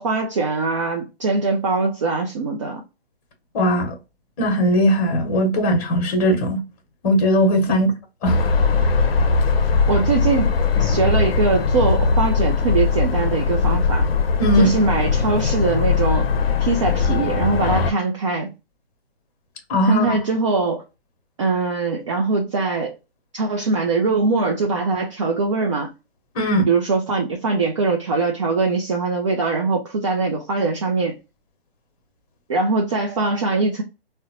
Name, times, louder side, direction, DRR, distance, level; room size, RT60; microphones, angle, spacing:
voice 1, 0.0-2.8 7.7-7.8 9.9-14.1 14.5-16.3 16.6-18.5 19.8-20.8 21.4-22.9 23.3-25.9 26.7-31.2 32.5-33.8, right 3 dB, 30° right, 0.4 m, -22 dB
voice 2, 3.5-3.9 4.4-6.6 7.0-7.9 8.2-8.4 14.4-14.7 19.7-20.2 26.3-26.7, equal, 35° left, 1.0 m, -18 dB
sound 1, 8.3-17.9, left 4 dB, 65° left, 0.6 m, -20 dB
3.6 x 2.1 x 2.8 m
hypercardioid pair, 145°, 32 cm